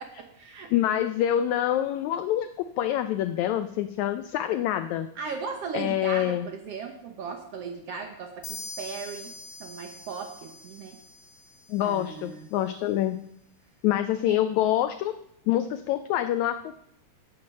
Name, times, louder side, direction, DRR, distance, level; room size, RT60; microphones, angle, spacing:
voice 1, 0.0-0.7 5.1-9.3 9.6-11.0 11.8-12.5 14.2-14.4, right 5 dB, 65° right, 4 dB, 1.5 m, -37 dB
voice 2, 0.7-2.5 2.8-5.1 5.7-6.5 11.7-13.2 13.8-15.1 15.5-16.8, left 12 dB, 90° left, 10 dB, 1.6 m, -26 dB
sound 1, 8.4-12.0, left 3 dB, 40° left, 1.8 m, -43 dB
9.7 x 7.8 x 7.4 m, 0.74 s
omnidirectional pair, 3.9 m